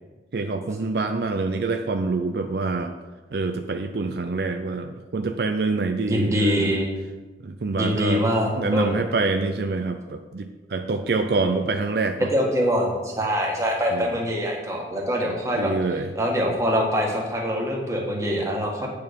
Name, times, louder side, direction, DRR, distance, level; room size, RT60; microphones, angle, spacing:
voice 1, 0.3-2.9 3.3-6.8 7.4-8.2 8.5-12.3 13.9-14.1 15.5-16.1, right 3 dB, 65° right, 6 dB, 0.5 m, -26 dB
voice 2, 6.1-6.9 7.8-9.0 12.3-15.7 16.1-18.9, equal, 20° right, -1 dB, 1.6 m, -24 dB
8.8 x 6.7 x 5.2 m, 1.3 s
head